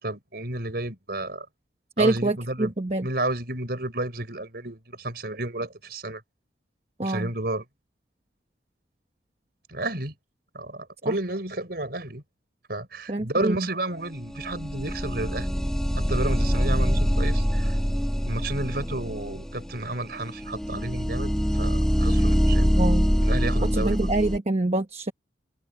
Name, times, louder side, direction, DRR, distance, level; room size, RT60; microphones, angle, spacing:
voice 1, 0.0-1.5 2.0-2.7 3.0-6.2 7.0-7.7 9.7-10.2 10.5-12.2 12.7-15.5 16.0-17.8 18.2-22.8 23.2-24.1, right 2 dB, 55° right, 5.3 m, -31 dB
voice 2, 2.0-3.1 7.0-7.3 13.1-13.7 22.7-23.1 23.6-25.1, right 2 dB, 35° right, 1.0 m, -25 dB
sound 1, 14.3-24.4, equal, 5° left, 1.6 m, -24 dB
head